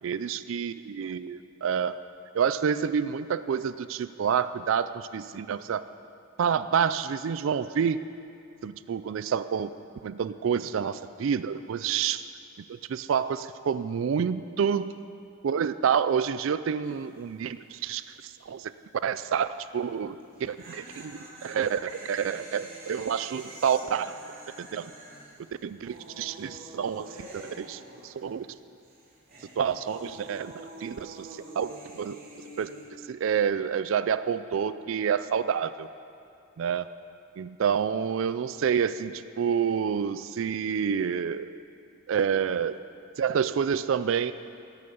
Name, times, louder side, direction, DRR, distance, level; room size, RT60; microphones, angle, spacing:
voice 1, 0.0-1.9 2.3-5.8 6.4-8.0 8.6-9.7 10.0-12.3 12.7-14.9 15.4-18.7 19.0-20.2 20.4-24.2 24.6-24.9 25.6-28.5 29.6-30.5 30.8-32.2 32.6-32.7 33.1-35.9 36.6-36.9 37.4-41.5 42.1-42.8 43.2-44.3, right 7 dB, 65° right, 14 dB, 0.3 m, -28 dB
sound 1, 16.8-17.2 17.4-17.5 20.2-28.6 28.8-32.8, right 1 dB, 45° right, 2.8 m, -47 dB
17.5 x 6.8 x 6.9 m, 2.5 s
head